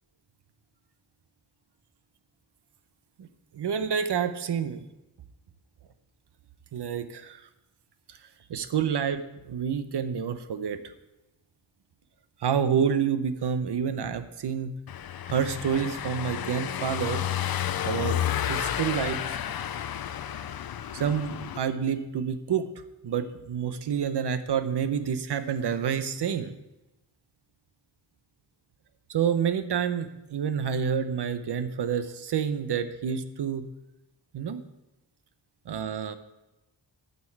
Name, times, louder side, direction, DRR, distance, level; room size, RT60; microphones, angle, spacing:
voice 1, 3.5-4.8 6.7-7.4 8.5-10.8 12.4-14.7 15.3-17.2 17.8-18.2 18.4-19.4 20.9-22.7 23.0-26.5 29.1-33.7 34.3-34.6 35.7-36.1, right 7 dB, 65° right, 11 dB, 0.8 m, -28 dB
Car passing by / Engine, 14.9-21.6, left 10 dB, 55° left, 0.5 m, -31 dB
12.0 x 6.9 x 4.6 m, 0.96 s
wide cardioid pair, 135°, 43 cm